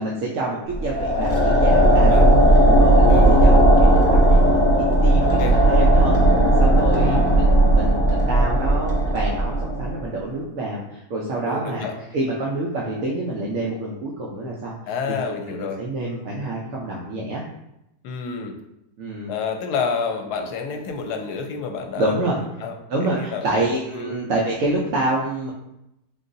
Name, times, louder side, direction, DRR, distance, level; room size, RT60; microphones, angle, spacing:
voice 1, 0.0-2.3 2.7-4.4 4.6-4.7 5.0-6.2 6.6-14.8 15.2-17.4 19.0-19.4 22.0-22.4 22.9-25.5, right 2 dB, 65° right, -3 dB, 0.9 m, -27 dB
sound 1, 0.7-10.0, right 1 dB, 20° left, 0.4 m, -16 dB
voice 2, 1.9-2.3 3.1-3.4 5.2-5.6 7.0-7.3 11.5-12.0 14.9-15.9 18.0-18.6 19.3-22.3 22.6-22.8 23.2-23.6 23.9-24.1, left 5 dB, 80° left, 4 dB, 1.1 m, -29 dB
3.9 x 3.7 x 2.6 m, 0.86 s
omnidirectional pair, 1.7 m